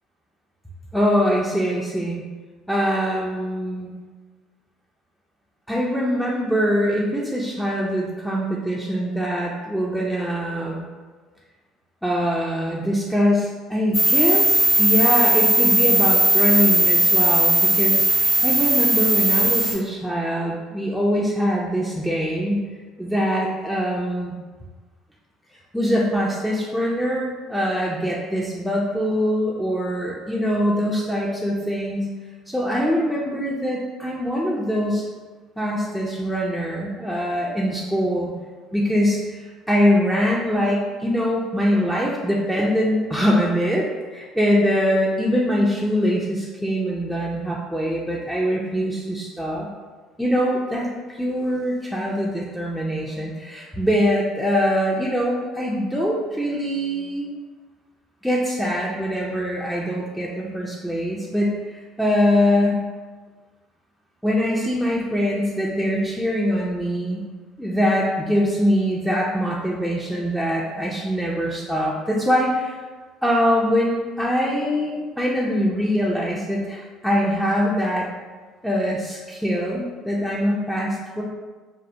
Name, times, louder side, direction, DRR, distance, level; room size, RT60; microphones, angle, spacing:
voice 1, 0.9-2.2 2.7-3.9 5.7-10.8 12.0-22.6 23.0-24.3 25.7-32.1 32.5-35.0 35.6-38.3 38.7-49.7 50.2-50.9 51.1-57.3 58.2-62.8 64.2-67.2 67.6-72.8 73.2-78.1 78.6-81.2, equal, ahead, -5 dB, 0.4 m, -23 dB
sound 1, 13.9-19.7, right 2 dB, 40° left, 0.6 m, -18 dB
2.2 x 2.1 x 2.7 m, 1.4 s
hypercardioid pair, 65°, 0 cm